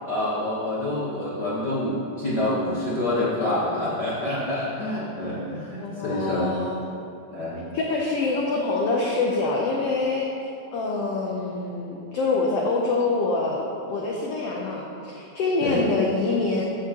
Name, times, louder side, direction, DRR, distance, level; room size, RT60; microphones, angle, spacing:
voice 1, 0.0-6.5 7.3-7.6 15.6-15.8, left 1 dB, 65° left, -9 dB, 1.0 m, -27 dB
voice 2, 5.8-6.8 7.7-10.3 10.7-13.6 13.9-16.6, left 3 dB, 85° left, -2 dB, 1.3 m, -25 dB
11.0 x 7.6 x 2.9 m, 2.8 s
omnidirectional pair, 3.7 m